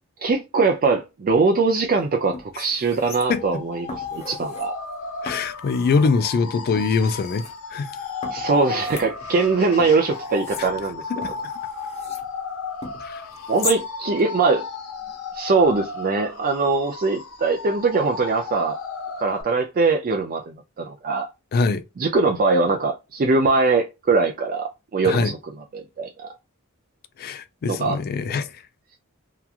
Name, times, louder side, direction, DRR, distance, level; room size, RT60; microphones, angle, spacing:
voice 1, 0.2-4.8 8.3-11.0 13.5-14.6 15.3-18.8 19.2-21.3 22.0-25.4 25.7-26.3 27.7-28.0, right 4 dB, 40° right, 0.4 m, -22 dB
sound 1, 1.8-1.9 2.3-3.6 3.9-4.7 5.3-6.1 6.8-7.5 8.2-9.5 9.8-12.3 12.8-13.8 14.2-14.3, left 3 dB, 30° left, 0.7 m, -37 dB
sound 2, 3.3-19.4, left 4 dB, 80° left, 0.7 m, -34 dB
voice 2, 5.2-7.4 7.7-7.9 10.6-10.7 11.2-11.5 13.0-13.2 21.5-21.8 25.0-25.3 27.2-28.5, left 4 dB, 45° left, 0.3 m, -23 dB
2.9 x 2.3 x 2.3 m
head